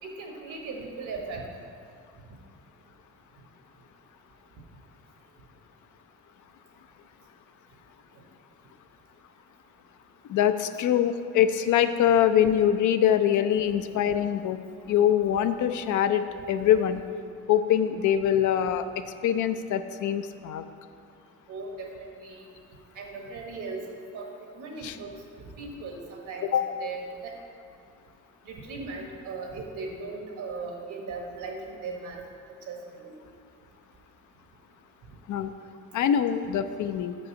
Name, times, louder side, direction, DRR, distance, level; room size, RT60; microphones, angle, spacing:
voice 1, 0.0-1.4 13.6-13.8 21.5-22.5 22.9-23.8 24.1-25.1 25.4-27.3 28.4-32.2 32.7-33.1, right 3 dB, 80° right, 1 dB, 1.5 m, -38 dB
voice 2, 10.3-14.6 14.9-17.0 17.5-18.8 19.2-20.6 24.8-24.9 26.5-26.6 35.3-35.5 35.9-37.2, left 10 dB, 75° left, 10 dB, 0.5 m, -23 dB
6.3 x 5.4 x 7.0 m, 2.3 s
cardioid pair, 90°, 30 cm